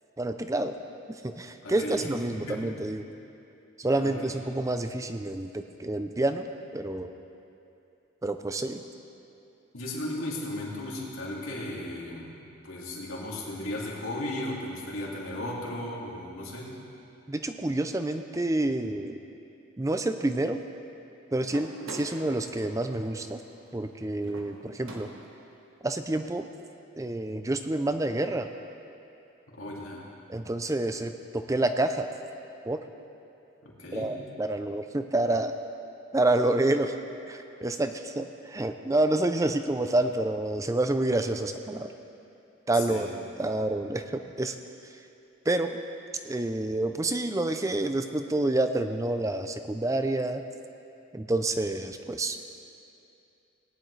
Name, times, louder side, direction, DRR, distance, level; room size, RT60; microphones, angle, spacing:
voice 1, 0.2-0.8 1.1-3.0 3.8-6.5 6.7-7.1 8.2-8.8 17.3-19.2 19.8-20.6 21.3-23.4 23.7-25.1 25.8-26.5 27.0-28.5 30.3-32.1 32.7-32.8 33.9-35.5 36.1-36.9 37.3-41.9 42.7-43.1 43.4-44.6 45.5-45.7 46.2-50.4 51.1-52.4, right 2 dB, 15° right, 8 dB, 0.4 m, -28 dB
voice 2, 1.6-2.7 4.0-4.1 9.7-12.3 12.6-16.7 29.5-30.0 33.6-34.1 42.7-43.0, left 1 dB, 80° left, -5 dB, 2.4 m, -36 dB
sound 1, 21.4-25.6, right 1 dB, 70° right, 1.3 m, -46 dB
18.5 x 10.5 x 3.2 m, 2.7 s
head